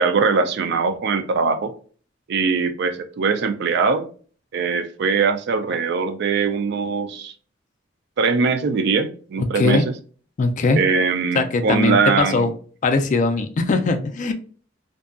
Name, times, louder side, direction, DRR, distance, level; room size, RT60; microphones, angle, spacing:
voice 1, 0.0-1.7 2.3-4.1 4.5-7.3 8.2-9.9 10.7-12.5, right 5 dB, 60° right, 0.4 m, -21 dB
voice 2, 9.5-9.9 10.4-10.8 11.3-12.5 12.8-14.3, left 3 dB, 40° left, 0.3 m, -20 dB
2.6 x 2.2 x 2.4 m
head